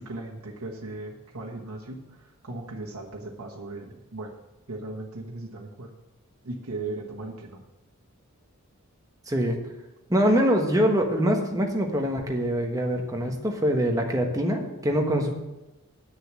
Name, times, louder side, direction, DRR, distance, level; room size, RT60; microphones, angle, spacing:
voice 1, 0.0-4.3 4.7-5.9 6.4-7.6, right 2 dB, 80° right, -2 dB, 1.3 m, -37 dB
voice 2, 9.3-9.6 10.1-15.3, equal, 15° right, 2 dB, 1.3 m, -24 dB
9.7 x 6.6 x 7.5 m, 0.99 s
head